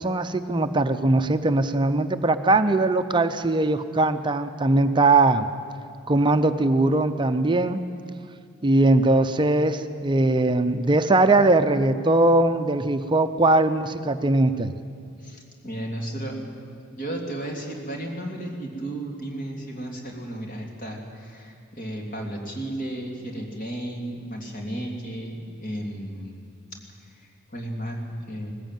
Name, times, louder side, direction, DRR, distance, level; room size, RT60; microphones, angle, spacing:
voice 1, 0.0-5.5 6.1-7.8 8.6-14.7, right 2 dB, 25° right, 8 dB, 0.6 m, -20 dB
voice 2, 15.2-16.6 16.9-26.5 27.0-28.5, right 1 dB, 45° left, 1 dB, 3.1 m, -34 dB
19.5 x 14.5 x 9.1 m, 2.3 s
head